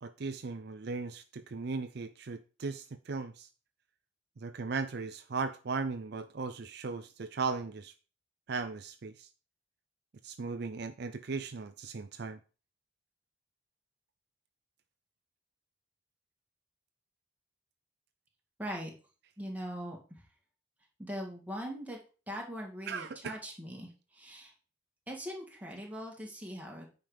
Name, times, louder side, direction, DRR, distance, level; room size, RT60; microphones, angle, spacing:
voice 1, 0.0-3.5 4.4-7.9 8.5-9.3 10.2-12.4 22.9-23.4, right 4 dB, 55° right, 10 dB, 0.5 m, -37 dB
voice 2, 18.6-18.9 19.4-20.2 21.0-22.0 22.3-24.5 25.1-26.9, equal, 10° right, -1 dB, 2.2 m, -41 dB
9.2 x 5.0 x 5.2 m, 0.35 s
head